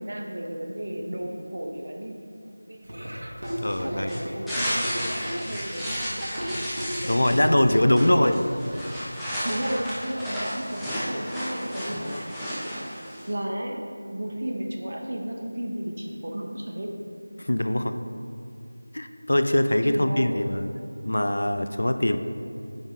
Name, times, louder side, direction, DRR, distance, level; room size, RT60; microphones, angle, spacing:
voice 1, 0.0-2.9 3.8-6.6 7.3-8.3 9.4-12.6 13.3-13.8 14.1-17.1 19.7-20.4, right 1 dB, 55° right, 1 dB, 0.9 m, -34 dB
Laughter / Drum, 2.8-8.8, equal, 85° right, 1.3 m, -35 dB
sound 1, 3.4-13.3, equal, ahead, 0.4 m, -33 dB
voice 2, 3.6-4.1 7.0-8.4 17.4-17.9 18.9-20.7 21.0-22.2, left 1 dB, 65° left, 8 dB, 0.4 m, -22 dB
8.7 x 4.0 x 3.7 m, 2.4 s
figure-of-eight pair, 175°, 0 cm